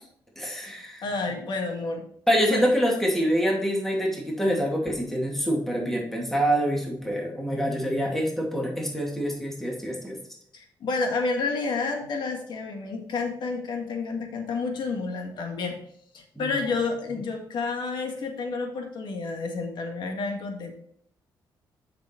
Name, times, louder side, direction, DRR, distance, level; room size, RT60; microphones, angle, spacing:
voice 1, 0.4-1.0 2.3-10.2 16.4-16.5, equal, 5° left, -2 dB, 2.5 m, -26 dB
voice 2, 1.0-2.1 2.5-2.7 10.5-15.8 16.1-20.7, left 4 dB, 70° left, 3 dB, 1.9 m, -30 dB
7.1 x 6.1 x 4.5 m, 0.66 s
cardioid pair, 90°, 8 cm